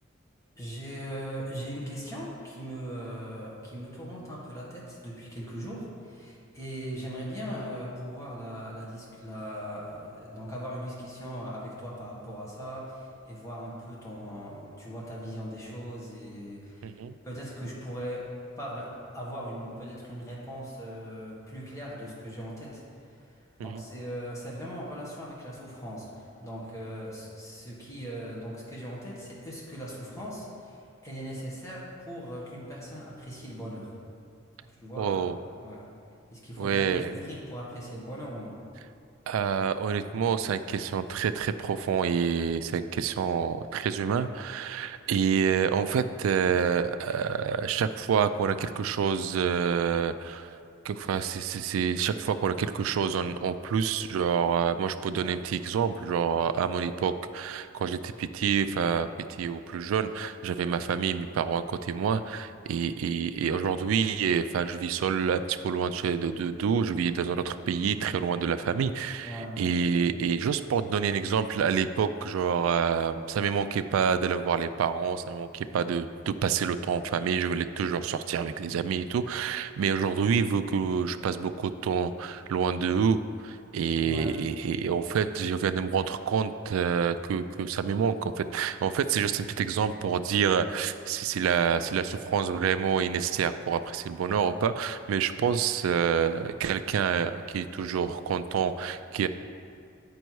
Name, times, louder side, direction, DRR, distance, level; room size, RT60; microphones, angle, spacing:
voice 1, 0.6-17.0 17.2-18.3 18.6-22.8 23.2-23.3 23.6-33.9 34.6-35.2 35.6-35.8 36.3-38.6 69.2-69.6 84.0-84.4, equal, 15° left, -6 dB, 1.5 m, -39 dB
voice 2, 16.8-17.2 23.6-23.8 35.0-35.4 36.6-37.1 39.3-50.5 50.8-59.1 59.4-99.3, right 7 dB, 85° right, 11 dB, 0.3 m, -27 dB
7.9 x 5.3 x 4.6 m, 2.4 s
head